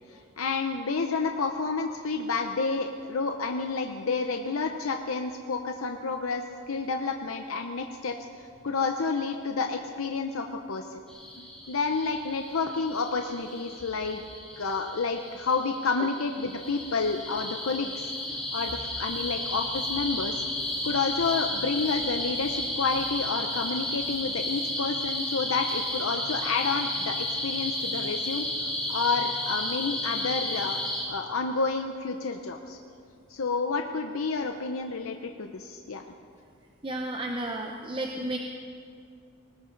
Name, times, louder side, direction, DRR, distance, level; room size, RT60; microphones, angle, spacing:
voice 1, 0.1-11.0 11.4-14.2 14.6-18.1 18.5-20.4 20.8-28.5 28.9-32.8 33.3-36.0, left 4 dB, 80° left, 5 dB, 0.7 m, -30 dB
sound 1, 11.1-31.0, left 1 dB, 5° left, 3.2 m, -33 dB
voice 2, 36.8-38.4, right 1 dB, 25° right, 2 dB, 0.8 m, -32 dB
19.5 x 18.5 x 4.0 m, 2.4 s
head